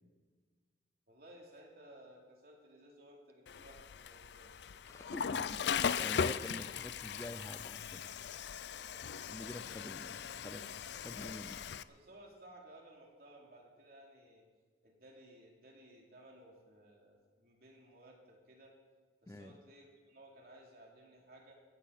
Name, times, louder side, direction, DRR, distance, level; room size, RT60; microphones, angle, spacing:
voice 1, 1.1-4.5 8.8-9.2 11.8-14.5 14.8-18.8 19.2-21.5, right 1 dB, 55° right, -1 dB, 3.1 m, -58 dB
Water / Toilet flush, 3.5-11.8, left 7 dB, 70° left, 0.4 m, -39 dB
voice 2, 4.9-8.0 9.3-11.6 19.3-19.5, left 1 dB, 15° left, 10 dB, 0.5 m, -47 dB
18.0 x 15.0 x 4.2 m, 1.5 s
head